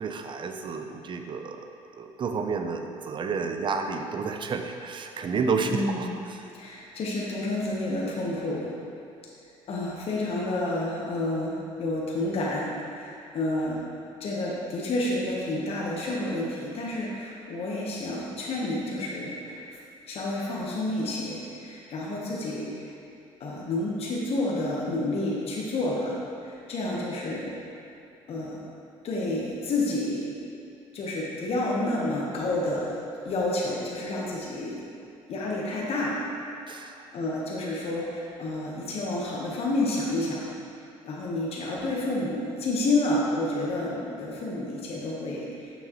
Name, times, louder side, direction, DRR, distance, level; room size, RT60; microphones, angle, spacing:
voice 1, 0.0-1.6 2.0-6.4 36.7-37.1, right 5 dB, 40° right, 5 dB, 0.6 m, -31 dB
voice 2, 5.6-6.2 6.5-8.7 9.7-13.8 14.2-19.8 20.1-22.9 23.4-27.6 28.3-28.6 29.0-30.4 30.9-33.0 33.2-34.9 35.3-36.2 37.1-40.5 41.0-45.7, left 2 dB, 55° left, -4 dB, 1.2 m, -29 dB
7.0 x 6.1 x 3.1 m, 2.6 s
supercardioid pair, 80°, 12 cm